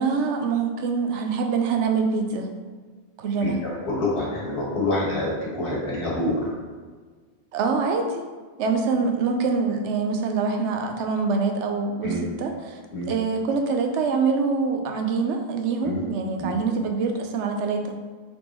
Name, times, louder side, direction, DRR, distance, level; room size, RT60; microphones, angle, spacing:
voice 1, 0.0-2.5 3.2-3.6 7.5-8.2 8.6-12.8 13.1-17.9, right 4 dB, 80° right, 4 dB, 0.9 m, -25 dB
voice 2, 3.4-6.5 12.0-12.2 12.9-13.1 15.8-16.0 16.4-16.6, left 1 dB, 70° left, -6 dB, 1.6 m, -27 dB
4.0 x 3.5 x 2.9 m, 1.5 s
omnidirectional pair, 1.2 m